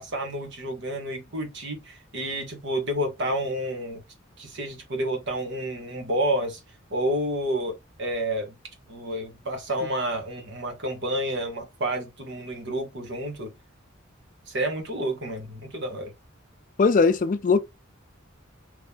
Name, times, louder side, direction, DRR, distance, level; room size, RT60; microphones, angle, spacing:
voice 1, 0.0-4.0 4.4-6.6 6.9-8.5 8.9-13.5 14.5-16.1, right 1 dB, 60° right, 1.2 m, -30 dB
voice 2, 16.8-17.6, left 4 dB, 40° left, 0.4 m, -19 dB
3.1 x 2.8 x 3.5 m
head